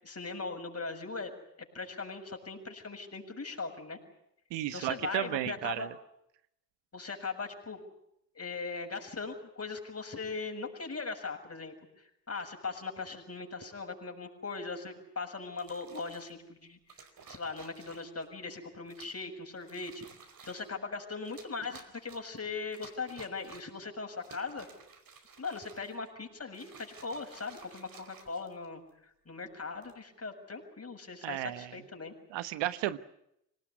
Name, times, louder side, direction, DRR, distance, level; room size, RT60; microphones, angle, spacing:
voice 1, 0.0-1.3 1.6-4.0 4.7-5.9 6.9-7.8 8.4-17.0 17.3-20.1 20.5-24.7 25.4-32.1, left 4 dB, 30° left, 4 dB, 7.1 m, -39 dB
voice 2, 4.5-5.9 31.2-31.8 32.3-33.0, right 14 dB, 65° right, 14 dB, 1.3 m, -33 dB
sound 1, 15.5-16.3 16.9-18.2 18.9-19.3 19.6-20.7 21.2-22.4 22.7-23.8 24.2-26.1 26.5-28.9 29.6-30.0, right 5 dB, 45° right, 4.9 m, -54 dB
26.5 x 19.0 x 9.8 m, 0.78 s
hypercardioid pair, 45°, 46 cm